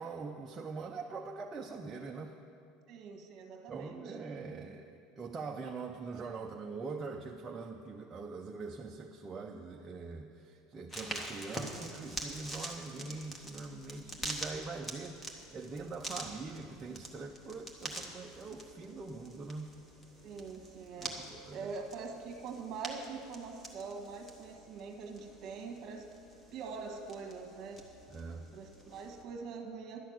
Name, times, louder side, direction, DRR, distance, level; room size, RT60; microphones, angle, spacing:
voice 1, 0.0-2.4 3.7-19.7 21.0-21.7 28.1-28.5, right 4 dB, 15° right, 0 dB, 0.5 m, -43 dB
voice 2, 2.9-4.2 20.2-21.2 21.5-26.1 26.5-27.8 28.5-30.0, right 5 dB, 35° right, 4 dB, 1.4 m, -43 dB
sound 1, 10.9-29.2, right 1 dB, 10° left, 1.0 m, -46 dB
11.5 x 6.4 x 9.3 m, 2.5 s
cardioid pair, 175°, 0 cm